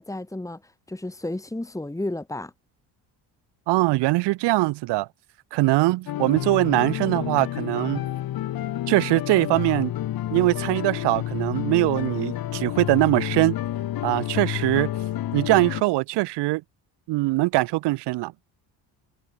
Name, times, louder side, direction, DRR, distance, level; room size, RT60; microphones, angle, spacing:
voice 1, 0.0-2.5, left 1 dB, 5° left, 2.9 m, -32 dB
voice 2, 3.7-5.1 5.5-8.0 8.9-9.9 10.3-13.5 14.0-14.9 15.3-16.6 17.1-18.3, right 20 dB, 70° right, 0.6 m, -22 dB
sound 1, 6.1-15.8, left 13 dB, 55° left, 1.3 m, -29 dB
cardioid pair, 115°, 42 cm